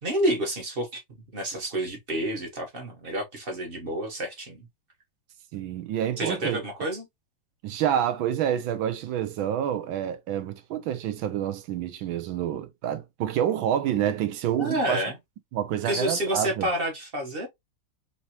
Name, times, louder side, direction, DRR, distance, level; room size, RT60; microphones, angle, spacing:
voice 1, 0.0-1.0 1.3-4.7 6.2-7.1 14.6-15.2 15.8-17.5, right 1 dB, 35° right, 1.0 m, -29 dB
voice 2, 5.5-6.6 7.6-15.0 15.5-16.7, right 10 dB, 80° right, 1.4 m, -28 dB
4.3 x 2.9 x 2.8 m
omnidirectional pair, 2.2 m